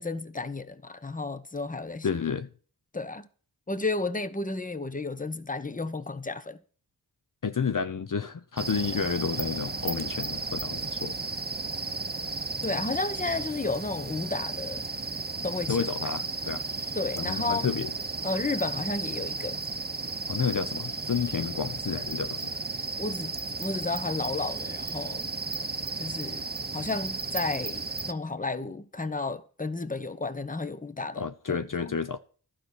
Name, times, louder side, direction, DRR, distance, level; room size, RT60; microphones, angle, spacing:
voice 1, 0.0-2.1 2.9-3.3 3.7-6.6 12.6-14.9 15.4-15.8 16.9-17.7 18.2-19.6 23.0-25.3 26.0-31.9, left 3 dB, 20° left, 1.0 m, -32 dB
voice 2, 2.0-2.5 7.4-11.2 15.7-16.6 17.2-17.9 20.3-22.5 31.2-32.2, left 6 dB, 50° left, 0.8 m, -30 dB
sound 1, 8.6-28.1, right 3 dB, 25° right, 0.8 m, -34 dB
12.0 x 5.9 x 8.3 m
cardioid pair, 45°, 40 cm